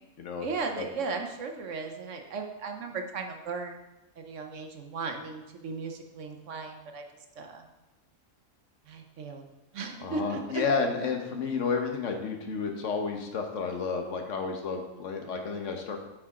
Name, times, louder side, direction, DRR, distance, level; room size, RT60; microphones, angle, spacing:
voice 1, 0.4-3.8 4.2-7.0 7.4-7.6 8.9-9.4 9.7-10.6, right 4 dB, 65° right, 4 dB, 1.1 m, -36 dB
voice 2, 10.0-16.0, left 5 dB, 65° left, 3 dB, 1.2 m, -31 dB
8.9 x 5.1 x 3.6 m, 0.98 s
omnidirectional pair, 1.4 m